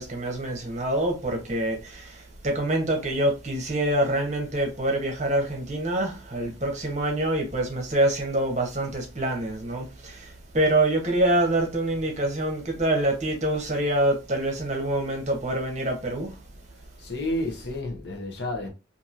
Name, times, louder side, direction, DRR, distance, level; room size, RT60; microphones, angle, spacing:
voice 1, 0.0-16.4, right 1 dB, 35° right, 0.8 m, -26 dB
voice 2, 17.0-18.7, left 1 dB, 60° left, 0.7 m, -30 dB
2.8 x 2.6 x 2.4 m
head